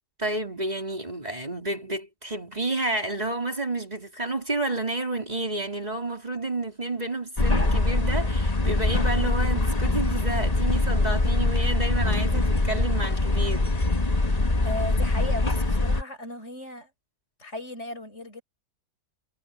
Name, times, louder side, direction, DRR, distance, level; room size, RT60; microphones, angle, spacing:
voice 1, 0.2-13.7, right 2 dB, 25° right, 4.1 m, -30 dB
sound 1, 7.4-16.0, left 2 dB, 25° left, 1.6 m, -23 dB
voice 2, 14.6-16.9 17.4-18.4, left 1 dB, 50° left, 7.3 m, -36 dB
omnidirectional pair, 1.6 m